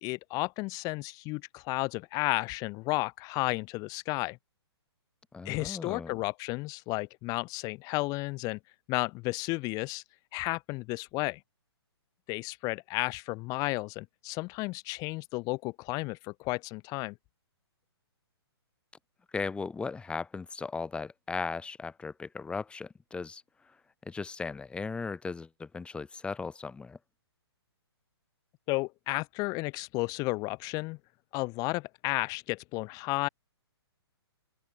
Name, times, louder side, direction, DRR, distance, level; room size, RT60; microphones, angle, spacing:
voice 1, 0.0-4.4 5.5-8.6 8.9-10.0 10.3-11.4 12.3-17.1 28.7-31.0 31.3-33.3, left 24 dB, 25° left, 1.8 m, -33 dB
voice 2, 5.3-6.2 19.3-23.4 24.1-27.0, left 4 dB, 5° left, 2.6 m, -37 dB
open air
hypercardioid pair, 150°, 14 cm